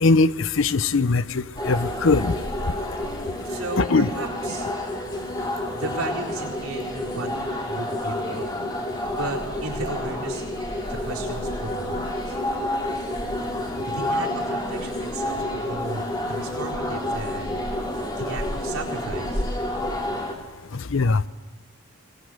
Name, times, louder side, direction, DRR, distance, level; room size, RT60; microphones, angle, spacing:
voice 1, 0.0-2.3 3.8-4.1 20.9-21.2, left 3 dB, 60° left, 16 dB, 0.6 m, -20 dB
sound 1, 1.6-20.4, left 1 dB, 20° left, 2.6 m, -29 dB
voice 2, 3.4-4.7 5.7-7.3 7.7-8.4 9.2-10.4 10.9-12.0 12.3-12.4 13.3-13.4 13.8-16.0 16.3-17.6 18.2-19.4, right 2 dB, 75° right, -2 dB, 4.3 m, -34 dB
21.5 x 20.0 x 7.9 m, 1.3 s
head